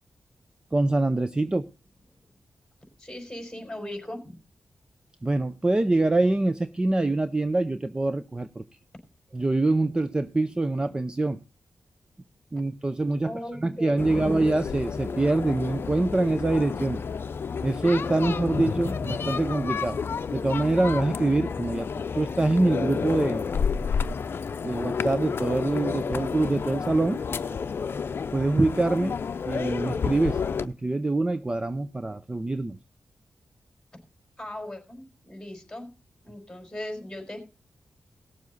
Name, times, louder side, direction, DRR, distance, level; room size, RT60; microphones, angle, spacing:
voice 1, 0.7-1.7 5.2-8.6 9.3-11.4 12.5-17.0 17.6-20.0 20.3-21.9 22.1-23.4 24.6-27.2 28.3-29.2 29.5-32.8, right 2 dB, 20° right, 12 dB, 0.6 m, -25 dB
voice 2, 3.0-4.4 13.2-14.3 34.4-35.9 36.2-37.5, left 1 dB, 10° left, 4 dB, 4.4 m, -38 dB
sound 1, 14.0-30.7, left 6 dB, 60° left, 0.6 m, -30 dB
18.0 x 7.2 x 4.0 m, 0.30 s
wide cardioid pair, 90°, 4 cm